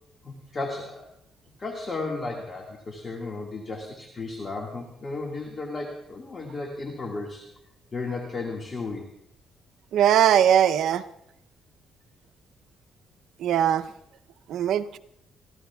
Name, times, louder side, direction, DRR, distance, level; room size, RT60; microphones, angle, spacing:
voice 1, 0.2-1.1 1.6-7.5 7.9-9.1, left 3 dB, 35° left, 0 dB, 1.7 m, -34 dB
voice 2, 9.9-11.0 13.4-13.8 14.5-15.0, right 10 dB, 75° right, 11 dB, 0.5 m, -20 dB
25.5 x 14.0 x 2.3 m, 0.79 s
cardioid pair, 90°, 0 cm